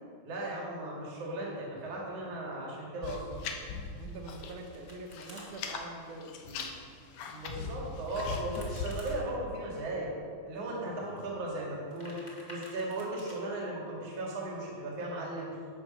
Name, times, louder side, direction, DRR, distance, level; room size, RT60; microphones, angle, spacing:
voice 1, 0.3-3.2 7.3-10.1 10.5-12.2 12.5-15.5, right 1 dB, 55° right, -3 dB, 3.3 m, -36 dB
sound 1, 3.0-4.6 4.9-5.9 6.2-8.9, left 5 dB, 80° left, 2.6 m, -39 dB
voice 2, 4.0-6.7, right 2 dB, 85° right, 4 dB, 2.7 m, -45 dB
Domestic sounds home sounds, 4.1-5.5 8.0-9.2 11.7-13.4, left 1 dB, 15° left, 2.2 m, -51 dB
11.0 x 8.7 x 6.6 m, 2.2 s
omnidirectional pair, 3.4 m